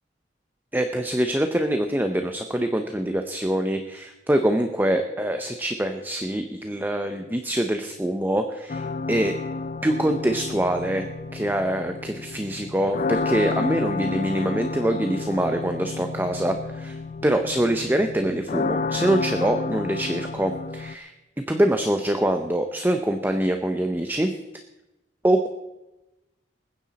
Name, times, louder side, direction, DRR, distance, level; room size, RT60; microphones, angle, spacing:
voice 1, 0.7-9.3 9.8-17.0 17.2-21.1 21.5-24.3 25.2-25.5, right 1 dB, 10° right, 6 dB, 0.7 m, -24 dB
sound 1, 8.7-20.9, left 4 dB, 45° left, 0.4 m, -31 dB
21.0 x 9.9 x 4.2 m, 1.0 s
head